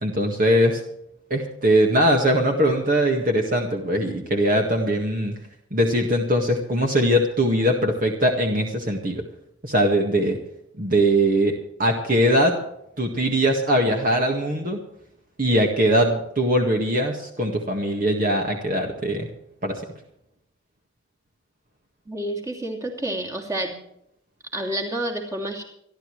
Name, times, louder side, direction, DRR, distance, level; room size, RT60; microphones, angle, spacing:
voice 1, 0.0-0.8 1.3-5.3 5.7-9.2 9.6-10.4 10.8-12.6 13.0-14.8 15.4-19.3 19.6-19.8, equal, 40° right, 2 dB, 1.8 m, -21 dB
voice 2, 22.1-23.8 24.5-25.6, right 1 dB, 15° right, 0 dB, 2.8 m, -29 dB
26.5 x 12.0 x 3.3 m, 0.78 s
head